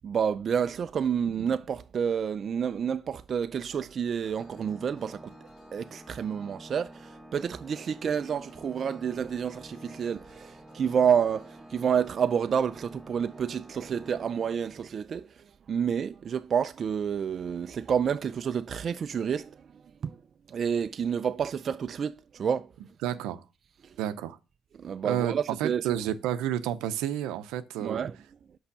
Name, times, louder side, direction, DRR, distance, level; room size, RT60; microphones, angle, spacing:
voice 1, 0.0-5.3 5.7-20.2 20.5-22.7 23.8-24.0 24.7-25.8 27.8-28.2, right 7 dB, 50° right, 0.4 m, -29 dB
sound 1, 3.7-7.0 8.3-11.7, left 1 dB, 60° left, 4.0 m, -63 dB
Organ, 4.2-15.0, right 1 dB, ahead, 1.0 m, -49 dB
voice 2, 23.0-23.4 24.0-24.4 25.0-25.3 25.6-28.0, right 11 dB, 85° right, 0.7 m, -30 dB
5.8 x 5.5 x 6.7 m
supercardioid pair, 70°, 0 cm